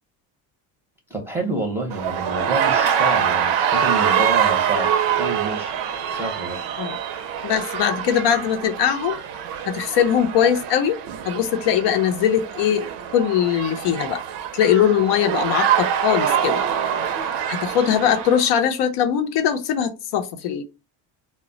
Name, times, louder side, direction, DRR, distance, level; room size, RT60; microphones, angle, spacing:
voice 1, 1.1-4.9 5.2-5.7 6.1-6.6, right 2 dB, 5° right, 0.6 m, -28 dB
sound 1, 1.9-18.5, right 8 dB, 70° right, 0.6 m, -24 dB
voice 2, 7.4-9.2 9.6-11.0 11.3-12.9 13.1-14.2 14.5-16.6 17.5-20.6, left 9 dB, 65° left, 0.6 m, -21 dB
2.1 x 2.0 x 3.7 m
cardioid pair, 140°, 45 cm